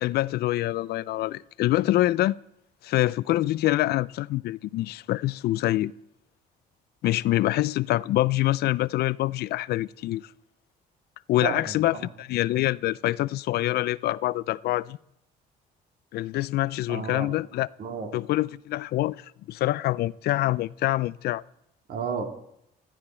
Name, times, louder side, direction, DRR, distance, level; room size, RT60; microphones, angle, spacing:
voice 1, 0.0-2.4 2.8-5.9 7.0-10.3 11.3-15.0 16.1-17.7 18.1-19.2 19.5-21.4, left 16 dB, 65° left, 0.4 m, -25 dB
voice 2, 11.4-12.1 16.9-17.3 17.8-18.1 21.9-22.2, right 5 dB, 60° right, 2.1 m, -32 dB
15.0 x 13.5 x 4.4 m
cardioid pair, 125°, 17 cm